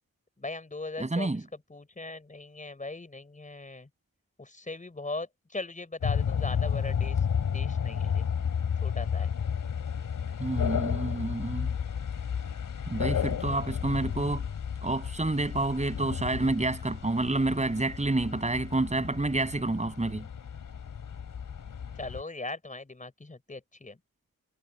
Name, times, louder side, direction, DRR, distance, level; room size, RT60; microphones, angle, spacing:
voice 1, 0.4-1.4 1.7-3.9 4.4-7.2 7.5-8.3 8.8-9.3 22.0-24.0, left 2 dB, 25° left, 5.2 m, -39 dB
voice 2, 1.0-1.4 10.4-11.7 12.9-14.5 14.8-20.3, right 2 dB, 20° right, 7.5 m, -29 dB
sound 1, 6.0-22.2, left 7 dB, 70° left, 2.8 m, -32 dB
wide cardioid pair, 105°, 33 cm